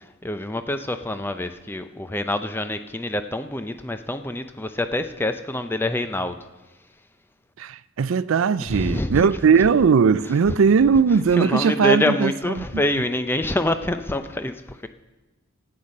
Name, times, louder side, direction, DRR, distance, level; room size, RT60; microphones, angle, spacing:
voice 1, 0.2-6.4 8.7-9.3 9.6-9.7 10.5-10.6 11.3-14.9, left 1 dB, 10° left, 0.5 m, -26 dB
voice 2, 7.6-12.8, right 6 dB, 70° right, 0.4 m, -19 dB
12.5 x 8.7 x 6.4 m
head